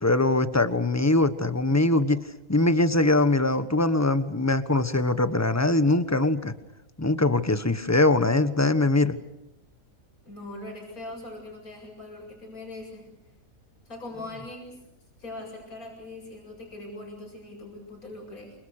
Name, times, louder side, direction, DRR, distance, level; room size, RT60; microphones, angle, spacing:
voice 1, 0.0-2.2 2.5-6.5 7.0-9.2, left 2 dB, 10° left, 11 dB, 1.1 m, -22 dB
voice 2, 10.2-13.1 13.9-14.8 15.2-18.5, left 2 dB, 70° left, 1 dB, 8.1 m, -41 dB
28.5 x 26.0 x 6.6 m, 0.91 s
omnidirectional pair, 1.6 m